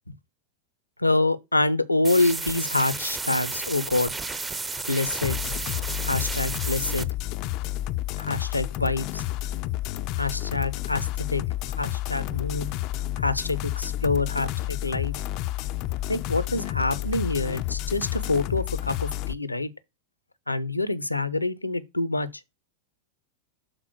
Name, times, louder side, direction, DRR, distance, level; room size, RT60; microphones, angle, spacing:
voice 1, 1.0-4.1 4.9-5.4 6.1-7.1 8.2-9.2 10.2-11.4 11.8-12.7 13.2-15.1 16.1-19.7 20.5-22.3, left 2 dB, 85° left, 0.7 m, -26 dB
sound 1, 2.0-7.0, right 3 dB, 15° right, 0.6 m, -32 dB
sound 2, 5.2-19.3, left 15 dB, 40° left, 0.4 m, -30 dB
6.6 x 3.6 x 6.2 m
figure-of-eight pair, 90°, 0 cm